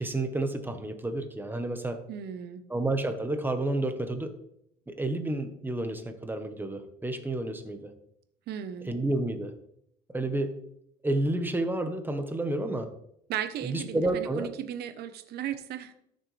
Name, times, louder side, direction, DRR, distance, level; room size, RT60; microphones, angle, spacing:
voice 1, 0.0-2.0 2.7-4.3 4.9-7.9 8.9-9.5 10.1-10.6 11.0-12.9 13.6-14.5, right 2 dB, 10° right, 7 dB, 1.2 m, -30 dB
voice 2, 2.1-2.6 8.5-8.9 13.3-15.9, right 10 dB, 70° right, 10 dB, 1.0 m, -36 dB
13.0 x 6.6 x 3.4 m, 0.73 s
cardioid pair, 110°, 17 cm